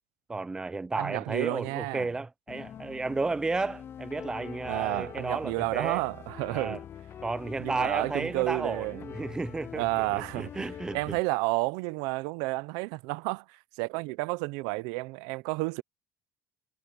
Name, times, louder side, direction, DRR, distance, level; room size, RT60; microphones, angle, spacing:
voice 1, 0.3-6.1 6.5-6.8 7.2-10.1 10.3-11.2, right 3 dB, 10° right, 0.4 m, -33 dB
voice 2, 0.9-2.1 4.7-6.8 7.6-9.1 9.8-15.8, right 24 dB, 85° right, 0.7 m, -31 dB
sound 1, 2.5-11.2, left 9 dB, 40° left, 0.6 m, -45 dB
cardioid pair, 115°, 6 cm